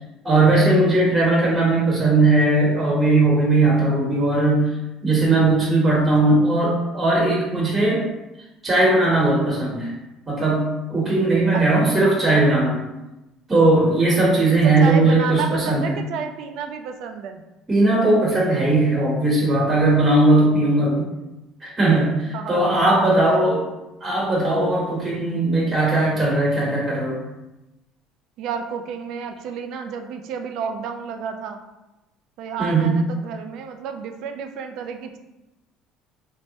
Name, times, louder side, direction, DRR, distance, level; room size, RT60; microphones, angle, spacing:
voice 1, 0.2-4.7 5.0-8.0 8.6-9.9 10.3-12.8 13.5-15.9 17.7-21.1 21.6-23.6 24.0-27.2 32.6-33.0, right 2 dB, 25° right, -4 dB, 1.0 m, -18 dB
voice 2, 14.6-17.4 21.9-23.5 28.4-31.6 32.4-35.2, right 6 dB, 70° right, 6 dB, 0.3 m, -31 dB
3.2 x 2.0 x 2.7 m, 1.0 s
supercardioid pair, 95°, 0 cm